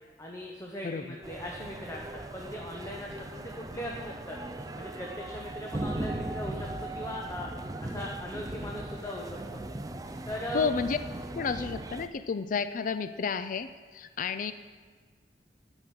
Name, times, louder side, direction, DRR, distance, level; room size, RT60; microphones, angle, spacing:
voice 1, 0.2-4.4 4.8-7.5 7.8-9.6 10.3-10.7, equal, 15° left, -1 dB, 1.0 m, -39 dB
sound 1, 1.2-12.1, right 2 dB, 20° right, 0.5 m, -39 dB
sound 2, 4.4-11.4, equal, 85° left, 3.3 m, -52 dB
voice 2, 10.5-11.0 11.3-14.5, left 5 dB, 50° left, 11 dB, 0.4 m, -31 dB
11.5 x 6.2 x 8.8 m, 1.5 s
head